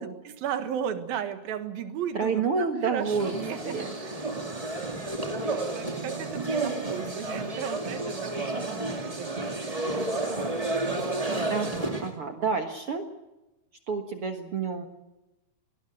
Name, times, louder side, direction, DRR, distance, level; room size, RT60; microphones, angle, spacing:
voice 1, 0.0-4.4 4.7-9.9, right 8 dB, 70° right, 10 dB, 3.2 m, -36 dB
voice 2, 2.1-3.4 3.6-3.9 11.5-13.0 13.9-14.9, right 5 dB, 55° right, 6 dB, 1.7 m, -29 dB
sound 1, 3.0-12.1, right 2 dB, 15° right, 1.4 m, -31 dB
22.0 x 19.5 x 7.9 m, 1.0 s
omnidirectional pair, 4.4 m